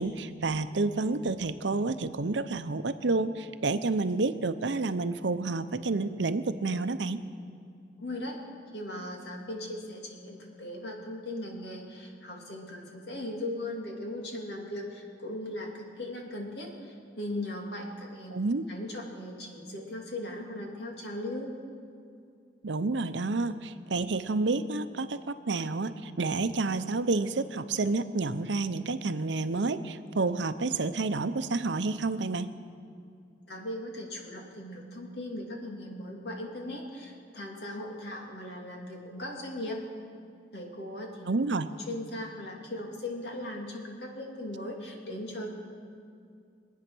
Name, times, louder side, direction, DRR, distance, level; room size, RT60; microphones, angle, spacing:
voice 1, 0.0-7.2 18.3-18.7 22.6-25.2 25.5-32.5 41.3-41.7, right 3 dB, 80° right, 11 dB, 0.7 m, -29 dB
voice 2, 8.0-8.4 8.7-18.3 18.7-21.5 33.5-39.8 40.5-41.3 41.9-45.5, left 1 dB, 65° left, 0 dB, 2.7 m, -38 dB
24.5 x 9.2 x 6.2 m, 2.4 s
head